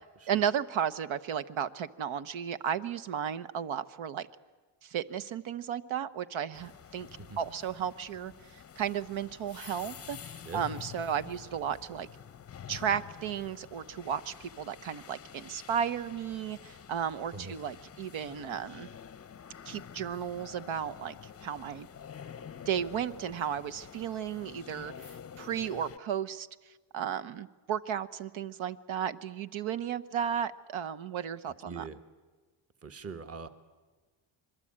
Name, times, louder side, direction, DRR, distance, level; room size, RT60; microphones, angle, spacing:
voice 1, 0.3-4.3 4.8-7.1 7.4-12.1 12.7-18.9 19.7-21.1 21.4-21.9 22.7-26.5 26.9-31.8, right 8 dB, 65° right, 13 dB, 1.1 m, -34 dB
sound 1, 6.5-26.0, left 8 dB, 30° left, 0.7 m, -48 dB
voice 2, 10.4-10.8 17.3-17.6 31.5-32.0 32.8-33.5, right 4 dB, 30° right, 9 dB, 1.4 m, -43 dB
26.0 x 21.5 x 8.7 m, 1.4 s
cardioid pair, 100°, 50 cm